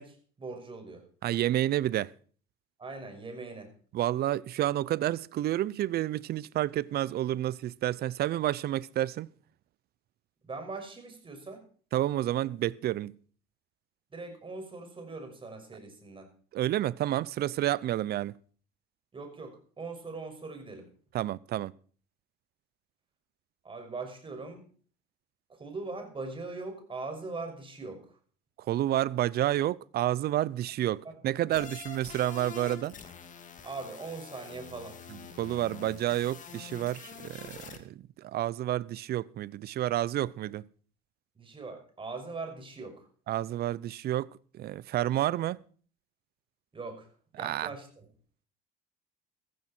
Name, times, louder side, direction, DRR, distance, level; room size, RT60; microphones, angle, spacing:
voice 1, 0.0-1.0 2.8-3.7 10.4-11.6 14.1-16.3 19.1-20.9 23.6-24.6 25.5-28.0 33.6-35.0 41.4-43.0 46.7-47.1 47.4-48.1, right 3 dB, 25° right, 6.0 m, -41 dB
voice 2, 1.2-2.1 3.9-9.3 11.9-13.2 16.5-18.4 21.1-21.7 28.7-32.9 35.4-40.7 43.3-45.6 47.4-47.7, right 13 dB, 55° right, 0.7 m, -30 dB
sound 1, 31.5-37.8, left 7 dB, 40° left, 2.7 m, -46 dB
15.5 x 14.5 x 4.5 m
supercardioid pair, 90°, 19 cm